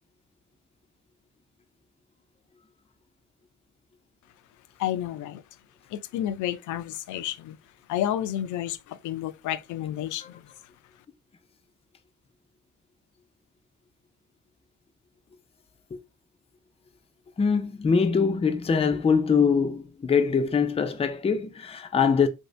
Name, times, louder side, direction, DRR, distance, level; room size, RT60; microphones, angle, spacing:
voice 1, 4.8-5.4 5.9-7.6 7.9-10.4, left 12 dB, 75° left, 0.4 m, -30 dB
voice 2, 17.4-22.3, left 6 dB, 20° left, 0.4 m, -23 dB
2.8 x 2.7 x 3.2 m
cardioid pair, 90°, 30 cm